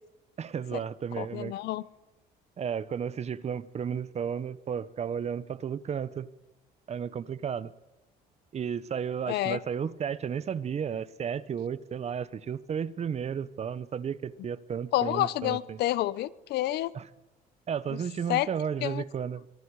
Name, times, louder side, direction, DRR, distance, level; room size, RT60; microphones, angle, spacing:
voice 1, 0.4-1.5 2.6-6.3 6.9-7.7 8.5-15.8 16.9-17.0 17.7-19.5, right 7 dB, 40° right, 1.0 m, -33 dB
voice 2, 1.2-1.8 9.3-9.6 14.9-16.9 17.9-18.0 18.3-18.5 18.8-19.0, left 15 dB, 75° left, 0.9 m, -29 dB
25.5 x 23.0 x 4.9 m
cardioid pair, 110°, 17 cm